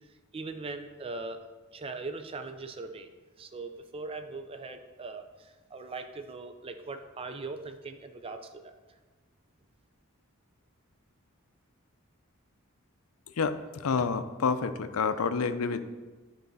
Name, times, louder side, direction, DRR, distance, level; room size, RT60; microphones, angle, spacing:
voice 1, 0.3-1.4 1.7-8.7, right 3 dB, 25° right, 7 dB, 0.4 m, -40 dB
voice 2, 13.4-15.8, left 5 dB, 90° left, 10 dB, 0.5 m, -28 dB
10.5 x 4.0 x 4.1 m, 1.3 s
head